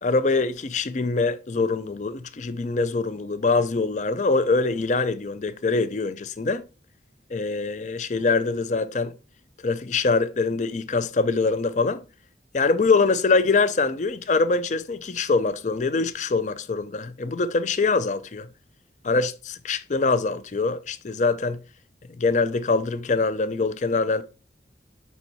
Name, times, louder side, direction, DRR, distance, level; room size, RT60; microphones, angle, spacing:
voice 1, 0.0-6.6 7.3-9.1 9.6-12.0 12.5-18.5 19.0-21.6 22.2-24.2, left 3 dB, 40° left, 0.4 m, -24 dB
5.3 x 4.2 x 4.5 m
head